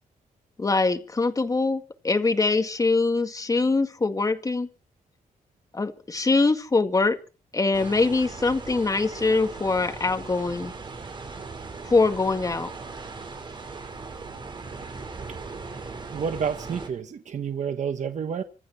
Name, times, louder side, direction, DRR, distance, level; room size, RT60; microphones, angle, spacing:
voice 1, 0.6-4.7 5.7-7.2 7.5-10.7 11.8-12.7, left 3 dB, 25° left, 2.0 m, -23 dB
sound 1, 7.7-16.9, right 4 dB, 35° right, 5.2 m, -39 dB
voice 2, 16.1-18.4, right 7 dB, 55° right, 1.3 m, -29 dB
26.0 x 9.1 x 5.9 m
wide cardioid pair, 145°, 15 cm